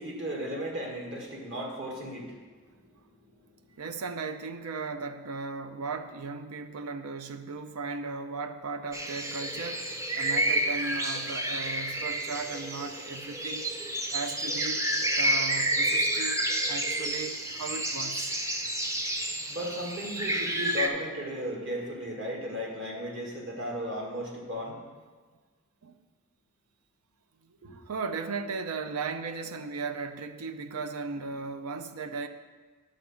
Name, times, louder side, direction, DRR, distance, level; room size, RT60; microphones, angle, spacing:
voice 1, 0.0-2.4 3.2-3.3 19.5-24.8 27.6-27.7, equal, 55° right, 1.9 m, -35 dB
voice 2, 3.8-9.9 10.2-13.7 14.1-14.9 15.2-18.3 25.8-26.0 27.4-32.3, right 4 dB, 85° right, 0.6 m, -36 dB
sound 1, 8.9-20.9, right 1 dB, 15° right, 0.5 m, -30 dB
9.9 x 3.9 x 7.2 m
head